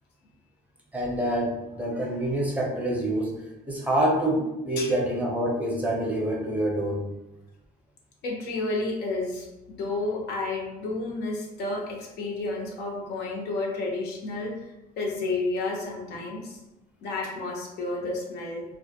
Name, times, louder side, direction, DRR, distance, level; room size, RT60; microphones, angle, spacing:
voice 1, 0.9-7.0, right 1 dB, 10° right, -3 dB, 0.6 m, -27 dB
voice 2, 8.2-14.5 15.0-16.6 17.0-18.6, left 2 dB, 75° left, -1 dB, 0.6 m, -31 dB
2.1 x 2.1 x 2.7 m, 0.96 s
cardioid pair, 110°, 17 cm